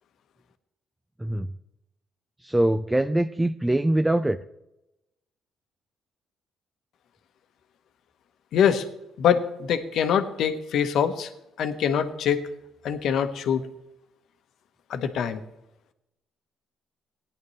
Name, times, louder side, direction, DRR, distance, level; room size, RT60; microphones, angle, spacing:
voice 1, 2.4-4.4, right 1 dB, 10° right, 9 dB, 0.5 m, -23 dB
voice 2, 8.5-8.8 9.2-11.3 11.6-12.5 12.8-13.7 14.9-15.4, left 8 dB, 70° left, 8 dB, 1.1 m, -24 dB
17.5 x 10.5 x 3.2 m, 0.88 s
cardioid pair, 85°, 0 cm